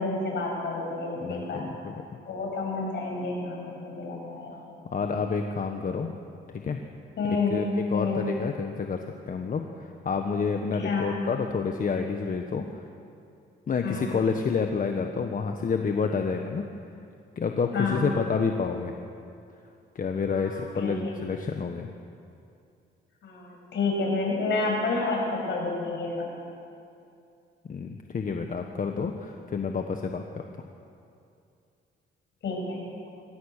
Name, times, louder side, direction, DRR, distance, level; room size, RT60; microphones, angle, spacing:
voice 1, 0.0-1.7 2.3-4.6 7.2-7.6 7.9-8.2 10.8-11.1 13.8-14.2 17.7-18.2 20.3-20.9 23.2-26.3 32.4-32.9, left 3 dB, 65° left, -1 dB, 7.1 m, -29 dB
voice 2, 1.2-1.9 4.9-6.1 6.5-6.8 7.3-7.6 7.9-9.6 10.0-12.8 13.7-16.7 17.4-18.9 19.9-21.9 27.6-30.4, left 5 dB, 45° left, 4 dB, 1.3 m, -29 dB
24.0 x 17.0 x 6.7 m, 2.5 s
cardioid pair, 90°, 20 cm